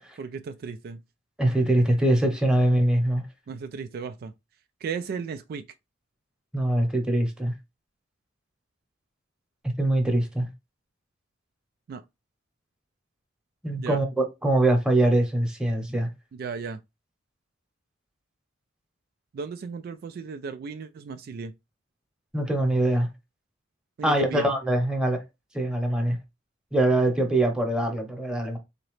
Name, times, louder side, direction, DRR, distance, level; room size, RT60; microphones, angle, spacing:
voice 1, 0.2-1.0 3.5-4.3 4.8-5.6 11.9-12.0 13.8-14.0 16.3-16.8 19.3-21.5 24.0-24.5, right 5 dB, 50° right, 0.3 m, -35 dB
voice 2, 1.4-3.2 6.5-7.5 9.8-10.5 13.6-16.1 22.3-23.1 24.0-25.2 25.5-26.2 26.7-28.6, right 1 dB, 5° right, 0.9 m, -23 dB
4.0 x 2.8 x 3.1 m
head